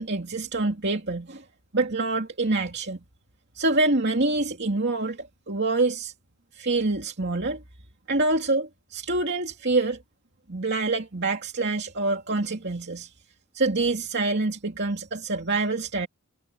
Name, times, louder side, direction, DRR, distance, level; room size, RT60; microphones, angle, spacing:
voice 1, 0.0-1.4 1.7-3.0 3.5-6.1 6.5-7.6 8.1-10.0 10.5-13.1 13.5-16.1, right 2 dB, 50° right, 2.6 m, -26 dB
head